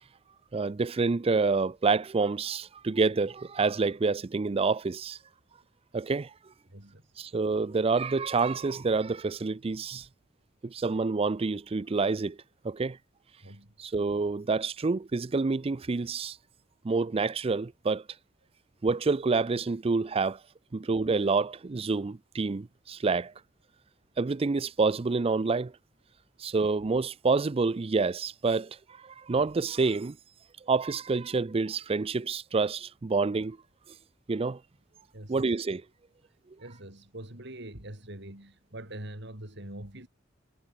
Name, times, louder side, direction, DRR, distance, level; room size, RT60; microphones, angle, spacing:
voice 1, 0.5-5.2 5.9-6.3 7.2-10.1 10.6-12.4 12.6-13.0 13.8-16.4 16.8-18.0 18.8-20.4 20.7-23.3 24.2-25.7 26.4-30.2 30.7-33.6 34.3-34.6 35.3-35.8, right 4 dB, 30° right, 0.4 m, -28 dB
voice 2, 6.7-7.1 13.4-13.7 35.1-35.5 36.6-40.1, right 1 dB, 60° right, 5.2 m, -44 dB
head